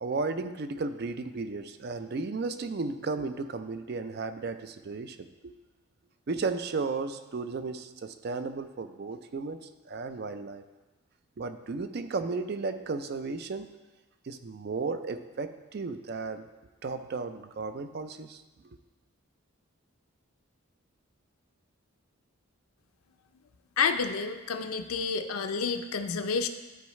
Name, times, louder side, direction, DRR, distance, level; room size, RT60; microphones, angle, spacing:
voice 1, 0.0-5.5 6.3-10.6 11.4-13.7 14.2-16.4 16.8-18.4, right 4 dB, 50° right, 10 dB, 0.4 m, -34 dB
voice 2, 23.8-26.5, left 5 dB, 85° left, 8 dB, 0.5 m, -29 dB
12.5 x 4.7 x 3.1 m, 1.2 s
head